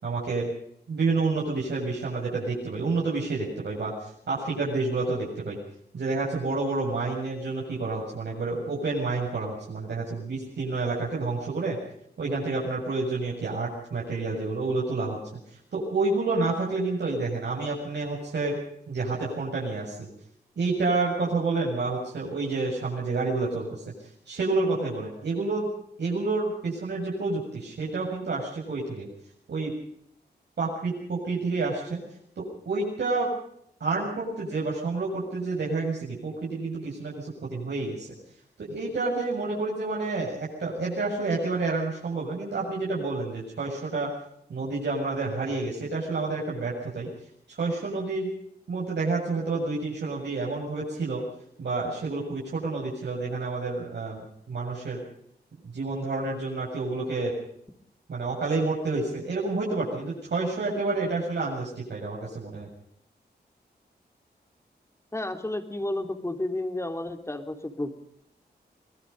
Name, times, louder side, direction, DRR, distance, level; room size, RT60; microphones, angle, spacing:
voice 1, 0.0-0.5 0.9-5.6 5.9-11.8 12.2-15.2 15.7-18.6 18.9-20.1 20.6-23.8 24.3-25.7 26.0-29.1 29.5-29.7 30.6-32.0 32.4-33.3 33.8-38.1 38.6-44.1 44.5-47.1 47.5-48.3 48.7-51.2 51.6-55.0 55.6-57.3 58.1-62.7, right 3 dB, 80° right, -4 dB, 7.3 m, -29 dB
voice 2, 65.1-68.0, left 1 dB, 15° left, 6 dB, 3.2 m, -31 dB
24.5 x 20.5 x 5.3 m, 0.70 s
wide cardioid pair, 110°, 17 cm